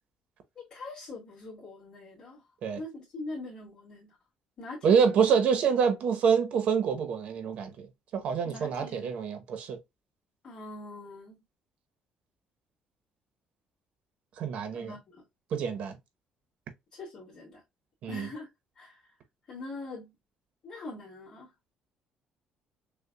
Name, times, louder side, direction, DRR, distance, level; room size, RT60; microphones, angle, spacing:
voice 1, 0.6-2.4 2.8-4.2 4.6-5.0 8.5-9.1 10.4-11.4 14.7-15.2 16.9-17.6 18.1-18.5 18.8-19.0 19.5-20.1 20.6-21.5, left 2 dB, 30° left, 2.2 m, -43 dB
voice 2, 4.8-7.9 8.1-9.8 14.4-14.9 15.5-16.0 18.0-18.3, right 6 dB, 60° right, 0.8 m, -26 dB
6.6 x 2.3 x 2.2 m
cardioid pair, 155°, 2 cm